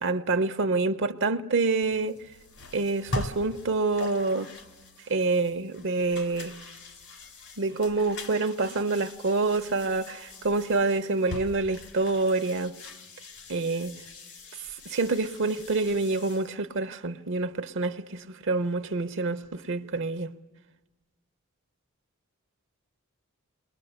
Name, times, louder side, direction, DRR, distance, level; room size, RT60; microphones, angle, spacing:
voice 1, 0.0-2.2 2.7-4.5 5.1-6.5 7.6-12.7 13.5-13.9 14.9-20.3, right 3 dB, 60° right, 0.8 m, -27 dB
sound 1, 1.8-16.5, left 2 dB, 85° left, 3.4 m, -42 dB
27.5 x 22.0 x 8.0 m
head